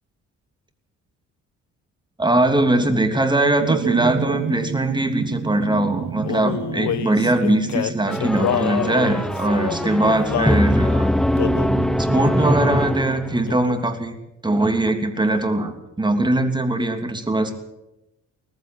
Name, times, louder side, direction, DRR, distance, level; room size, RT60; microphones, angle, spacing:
voice 1, 2.2-11.1 12.0-14.2 14.4-17.5, right 2 dB, 15° right, 6 dB, 3.0 m, -21 dB
sound 1, 3.6-10.4 11.4-13.2, right 8 dB, 45° right, 1.7 m, -30 dB
Male singing, 6.2-10.6 11.4-11.8 12.4-12.7 13.0-13.9, left 11 dB, 70° left, 1.2 m, -28 dB
sound 2, 8.1-13.6, equal, ahead, 0.8 m, -22 dB
19.5 x 14.5 x 9.3 m, 0.91 s
cardioid pair, 90°, 30 cm